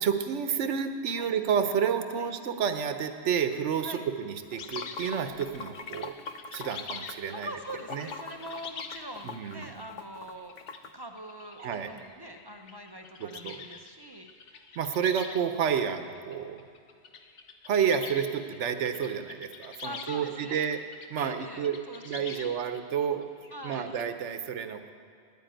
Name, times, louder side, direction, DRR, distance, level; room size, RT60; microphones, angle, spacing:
voice 1, 0.0-6.2 6.5-7.5 7.9-8.1 9.2-9.7 11.6-12.0 13.2-13.6 14.8-16.6 17.7-20.8 21.1-23.3 23.6-24.9, right 7 dB, 80° right, 9 dB, 1.1 m, -30 dB
Water / Sink (filling or washing), 4.4-10.9, left 5 dB, 55° left, 0.5 m, -43 dB
sound 1, 4.5-9.9 10.4-15.6 15.9-21.1 21.4-24.0, left 5 dB, 80° left, 1.2 m, -45 dB
voice 2, 7.3-10.6 10.9-14.3 19.8-20.6 21.2-22.5 23.5-23.9, right 1 dB, 30° right, 4 dB, 0.5 m, -43 dB
9.8 x 9.4 x 9.0 m, 2.3 s
omnidirectional pair, 1.2 m